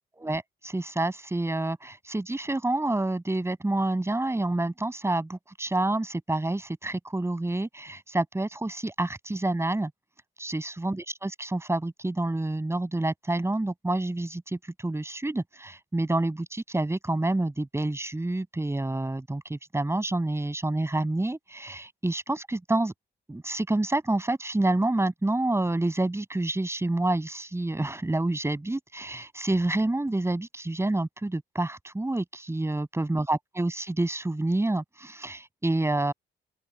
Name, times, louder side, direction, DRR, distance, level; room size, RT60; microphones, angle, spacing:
voice 1, 0.1-9.9 10.4-22.9 23.3-36.1, right 2 dB, 15° right, 7.3 m, -28 dB
open air
cardioid pair, 90°, 20 cm